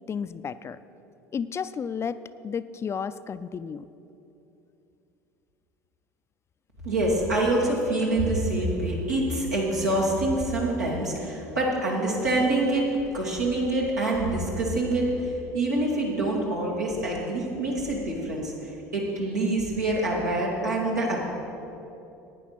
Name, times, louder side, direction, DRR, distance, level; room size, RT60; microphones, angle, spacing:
voice 1, 0.1-0.8 1.3-2.2 2.4-3.9, left 6 dB, 30° left, 14 dB, 0.4 m, -32 dB
voice 2, 6.8-21.2, right 2 dB, 90° right, -4 dB, 2.3 m, -26 dB
10.0 x 9.3 x 5.8 m, 2.8 s
hypercardioid pair, 70°, 9 cm